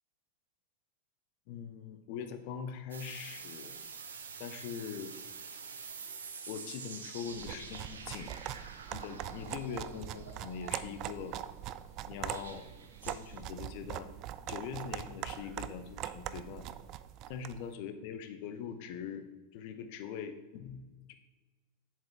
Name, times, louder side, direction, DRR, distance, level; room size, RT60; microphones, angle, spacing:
voice 1, 1.5-3.8 4.4-5.1 6.5-8.4 8.9-11.4 12.1-12.7 13.0-14.1 14.5-16.7 17.3-19.3 19.5-21.1, left 7 dB, 45° left, 9 dB, 0.8 m, -42 dB
sound 1, 2.9-11.3 12.3-13.4, right 5 dB, 70° right, 0.8 m, -47 dB
sound 2, 7.3-17.6, right 12 dB, 40° right, 0.3 m, -42 dB
7.5 x 7.5 x 3.5 m, 1.2 s
figure-of-eight pair, 90°, 0 cm